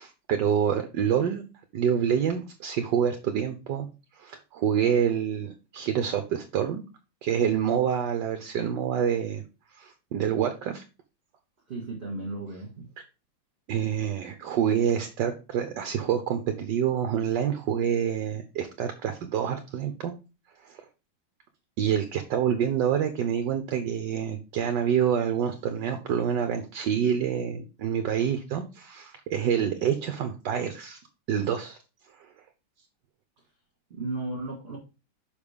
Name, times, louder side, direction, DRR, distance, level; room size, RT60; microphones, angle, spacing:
voice 1, 0.0-1.4 1.7-3.9 4.2-6.8 7.2-9.4 9.8-10.8 13.7-20.1 20.6-20.8 21.8-31.0 31.3-31.8, right 8 dB, 70° right, 7 dB, 1.3 m, -27 dB
voice 2, 11.7-12.8 33.9-34.8, right 2 dB, 30° right, -1 dB, 1.9 m, -34 dB
6.6 x 5.3 x 3.5 m, 0.30 s
omnidirectional pair, 2.2 m